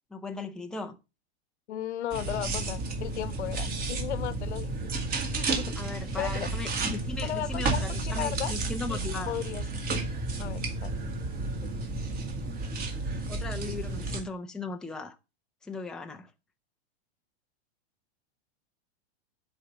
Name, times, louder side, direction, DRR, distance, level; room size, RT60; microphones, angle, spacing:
voice 1, 0.1-1.0 5.8-9.4 13.3-15.2 15.6-16.3, left 3 dB, ahead, 0.7 m, -37 dB
voice 2, 1.7-4.7 5.1-5.8 6.2-6.5 7.2-8.5 8.9-9.6 10.4-10.9 11.6-11.7, left 11 dB, 85° left, 1.3 m, -35 dB
sound 1, 2.1-14.2, right 3 dB, 25° right, 2.0 m, -32 dB
10.5 x 4.5 x 7.1 m
supercardioid pair, 150°, 33 cm